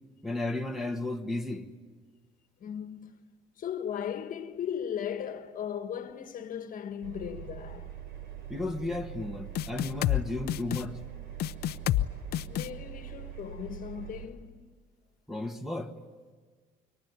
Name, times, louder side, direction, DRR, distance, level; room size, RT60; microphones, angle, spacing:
voice 1, 0.2-1.7 8.5-11.0 15.3-15.9, left 2 dB, ahead, 1.7 m, -34 dB
voice 2, 2.6-3.2 3.6-7.9 12.5-14.7, left 8 dB, 55° left, 1.5 m, -37 dB
Engine, 7.0-14.3, right 8 dB, 80° right, 3.8 m, -43 dB
sound 1, 9.6-10.2 10.5-10.8 11.4-12.1 12.3-12.7, left 14 dB, 70° left, 0.8 m, -28 dB
26.0 x 23.5 x 9.8 m
cardioid pair, 110°, 17 cm